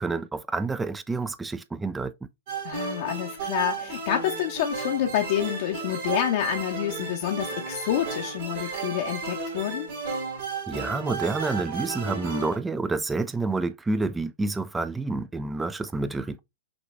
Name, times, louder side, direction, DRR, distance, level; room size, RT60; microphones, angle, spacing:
voice 1, 0.0-2.1 10.7-16.4, right 3 dB, 10° right, 0.3 m, -28 dB
sound 1, 2.5-12.6, right 4 dB, 55° right, 2.0 m, -33 dB
voice 2, 2.6-9.9, left 11 dB, 55° left, 0.7 m, -28 dB
6.1 x 2.3 x 3.1 m
hypercardioid pair, 125°, 0 cm